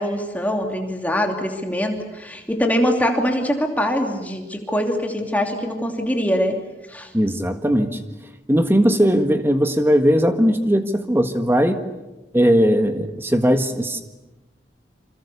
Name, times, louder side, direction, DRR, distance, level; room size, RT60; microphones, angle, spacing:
voice 1, 0.0-6.6 6.9-7.1, equal, 10° left, 3 dB, 2.9 m, -23 dB
voice 2, 7.1-8.0 8.5-11.8 12.3-14.0, equal, 15° right, 7 dB, 1.6 m, -18 dB
28.5 x 26.5 x 7.0 m, 1.1 s
head